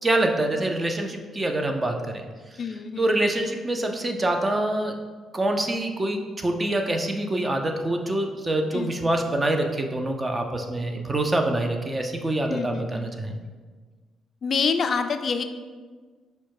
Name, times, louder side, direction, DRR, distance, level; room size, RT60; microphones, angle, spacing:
voice 1, 0.0-2.2 3.0-5.0 5.3-13.3, right 1 dB, 25° right, 4 dB, 0.5 m, -25 dB
voice 2, 2.6-3.2 8.7-9.1 12.5-13.1 14.4-15.4, left 5 dB, 50° left, 9 dB, 0.3 m, -27 dB
5.3 x 2.2 x 4.6 m, 1.4 s
cardioid pair, 90°, 0 cm